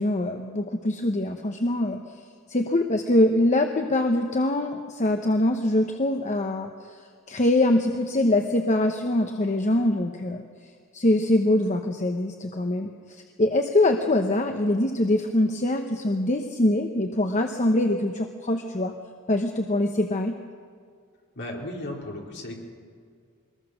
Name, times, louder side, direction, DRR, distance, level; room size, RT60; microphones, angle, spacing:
voice 1, 0.0-2.2 2.5-7.0 7.3-10.4 10.9-18.9 19.3-20.3, left 1 dB, 35° left, 5 dB, 1.0 m, -23 dB
voice 2, 21.4-22.5, left 1 dB, 50° left, -1 dB, 4.0 m, -35 dB
23.0 x 20.0 x 6.5 m, 2.1 s
head